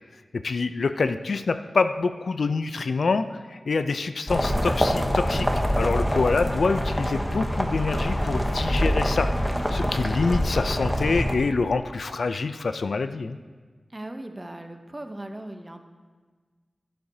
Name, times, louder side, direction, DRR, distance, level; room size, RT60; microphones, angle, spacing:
voice 1, 0.3-13.4, left 4 dB, 75° left, 10 dB, 0.4 m, -26 dB
sound 1, 4.3-11.3, equal, 10° left, 0.9 m, -25 dB
voice 2, 13.9-15.8, right 1 dB, 20° right, 6 dB, 0.7 m, -38 dB
11.5 x 11.0 x 2.7 m, 1.4 s
wide cardioid pair, 100°, 0 cm